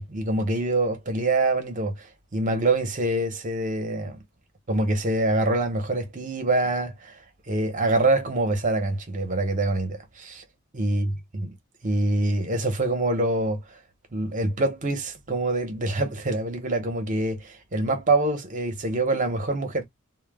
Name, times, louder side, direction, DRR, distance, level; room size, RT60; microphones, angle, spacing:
voice 1, 0.0-2.1 2.3-4.2 4.7-7.2 7.5-10.4 10.7-11.5 11.8-13.6 14.1-19.8, right 2 dB, 40° right, 0.8 m, -25 dB
2.2 x 2.1 x 3.4 m
head